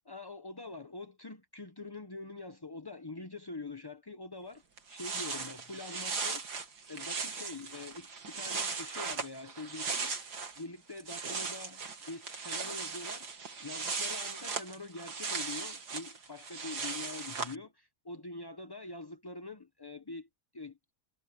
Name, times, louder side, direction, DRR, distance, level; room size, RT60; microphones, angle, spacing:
voice 1, 0.1-4.6 4.9-6.4 6.9-10.1 10.6-11.8 12.1-13.3 13.6-20.3 20.5-20.8, left 3 dB, 25° left, 0.6 m, -44 dB
sound 1, 4.5-4.6 4.8-10.6 10.9-17.6, right 5 dB, 65° right, 2.8 m, -38 dB
omnidirectional pair, 1.9 m